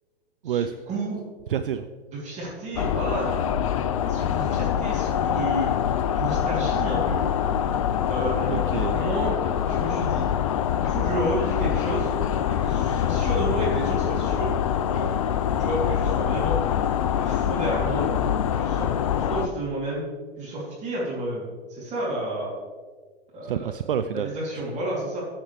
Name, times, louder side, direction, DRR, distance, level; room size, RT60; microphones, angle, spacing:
voice 1, 0.4-1.2 2.2-3.3 4.0-5.7 6.1-7.2 8.1-8.6 8.9-9.4 9.6-10.3 10.8-12.1 12.5-14.5 14.9-16.6 17.2-18.1 18.5-20.0 20.4-22.5 23.3-23.7 24.1-25.2, right 1 dB, 20° right, -6 dB, 2.9 m, -31 dB
voice 2, 1.5-1.9 8.5-9.1 23.4-24.3, right 9 dB, 55° right, 10 dB, 0.5 m, -28 dB
sound 1, 2.8-19.5, left 9 dB, 35° left, 0.4 m, -24 dB
13.5 x 7.2 x 3.3 m, 1.5 s
figure-of-eight pair, 115°, 32 cm